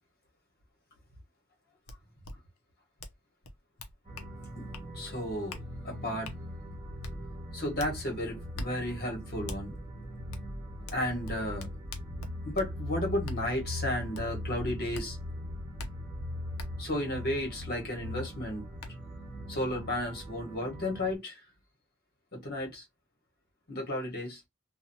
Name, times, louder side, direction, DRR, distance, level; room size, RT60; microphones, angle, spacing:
sound 1, 1.9-2.0 2.2-2.3 3.0-3.2 3.4-4.3 4.7-4.9 5.5-5.6 6.2-6.4 7.0-7.1 7.8-7.9 8.5-8.7 9.5-9.6 10.3-10.4 10.9-12.7 13.2-13.4 14.1-14.2 14.9-15.1 15.8-15.9 16.6-16.7 18.2-18.3 18.8-18.9, left 2 dB, 80° left, 0.7 m, -41 dB
sound 2, 4.0-21.1, left 1 dB, 20° right, 1.3 m, -40 dB
voice 1, 4.9-5.6 5.8-6.3 7.5-9.8 10.9-11.7 12.4-15.2 16.8-18.6 19.5-21.4 22.3-22.8 23.7-24.4, left 1 dB, 45° left, 1.3 m, -33 dB
2.8 x 2.4 x 2.7 m
head